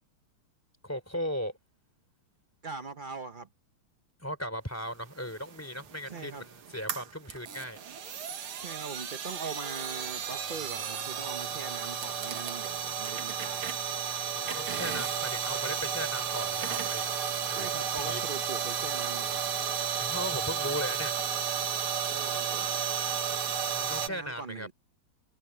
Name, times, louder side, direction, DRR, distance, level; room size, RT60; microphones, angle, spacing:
voice 1, 0.8-1.5 4.2-7.8 14.3-17.0 17.5-17.7 18.1-18.2 20.0-21.1 23.6-24.7, equal, 5° left, 3.1 m, -37 dB
voice 2, 2.6-3.5 6.1-6.4 8.6-13.7 17.5-19.4 22.1-22.7 24.0-24.7, right 4 dB, 70° right, 0.4 m, -41 dB
sound 1, 5.3-24.1, right 8 dB, 90° right, 2.4 m, -33 dB
omnidirectional pair, 2.3 m